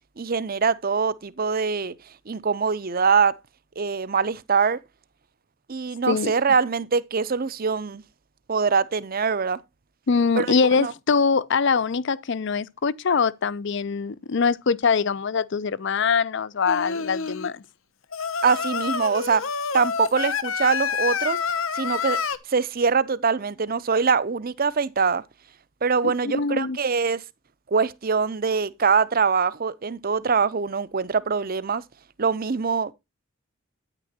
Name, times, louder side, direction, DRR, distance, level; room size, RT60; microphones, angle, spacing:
voice 1, 0.2-1.9 2.3-3.4 3.8-4.8 5.7-8.0 8.5-9.6 10.4-10.9 18.4-19.5 19.7-21.4 21.7-22.2 22.5-25.2 25.8-27.2 27.7-31.8 32.2-32.9, right 5 dB, 45° right, 0.7 m, -23 dB
voice 2, 10.1-17.6 26.0-26.8, left 5 dB, 60° left, 0.5 m, -23 dB
Singing, 16.7-17.5 18.1-22.4, left 6 dB, 75° left, 1.0 m, -28 dB
9.9 x 9.5 x 2.8 m
head